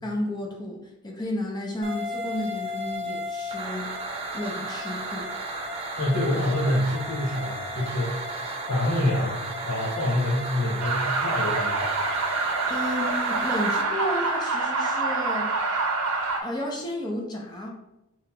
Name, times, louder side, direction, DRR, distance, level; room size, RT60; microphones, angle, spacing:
voice 1, 0.0-3.9 4.3-5.3 12.7-15.5 16.4-17.7, left 1 dB, 20° left, -1 dB, 0.6 m, -32 dB
sound 1, 1.8-13.8, right 1 dB, 25° right, 0.4 m, -34 dB
voice 2, 6.0-8.2 8.7-11.8, left 1 dB, 85° left, -6 dB, 0.8 m, -26 dB
sound 2, 10.8-16.4, right 3 dB, 75° right, 0.6 m, -26 dB
5.4 x 2.9 x 2.2 m, 0.90 s
head